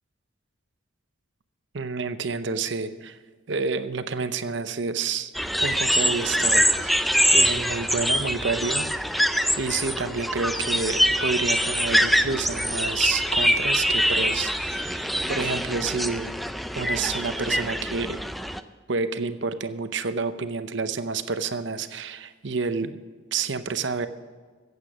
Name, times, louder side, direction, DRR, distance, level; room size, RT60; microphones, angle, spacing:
voice 1, 1.7-3.2 3.5-5.3 5.6-8.9 9.2-16.4 16.7-18.2 18.9-23.0 23.3-24.1, right 4 dB, 65° right, 11 dB, 0.8 m, -29 dB
sound 1, 5.3-18.6, equal, ahead, 0.4 m, -24 dB
15.0 x 8.3 x 6.2 m, 1.5 s
head